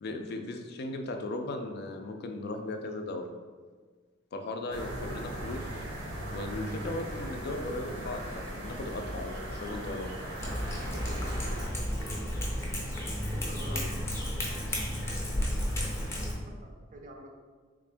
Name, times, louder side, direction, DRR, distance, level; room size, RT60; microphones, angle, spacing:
voice 1, 0.0-3.3 4.3-5.8 6.3-10.1 13.7-13.9 16.2-16.3, left 2 dB, 55° left, 5 dB, 0.4 m, -37 dB
sound 1, 4.7-11.7, right 1 dB, 90° right, 0.9 m, -38 dB
Cat, 10.4-16.3, equal, 15° left, 0.6 m, -32 dB
voice 2, 10.9-11.5 13.3-13.9 16.2-17.3, equal, 40° right, 2 dB, 0.5 m, -47 dB
3.6 x 2.5 x 3.4 m, 1.5 s
head